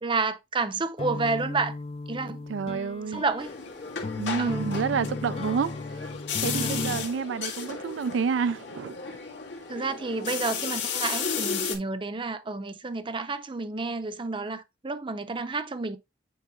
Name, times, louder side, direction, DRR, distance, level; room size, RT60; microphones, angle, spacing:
voice 1, 0.0-1.8 2.1-2.5 3.1-3.5 4.4-4.8 6.5-7.0 9.7-16.0, right 3 dB, 25° right, 0.6 m, -30 dB
sound 1, 1.0-7.1, left 3 dB, 30° left, 0.4 m, -35 dB
voice 2, 2.5-3.2 4.2-5.8 6.4-9.0, right 6 dB, 85° right, 0.4 m, -29 dB
sound 2, 3.4-11.8, left 6 dB, 90° left, 2.0 m, -34 dB
9.4 x 4.7 x 2.4 m
head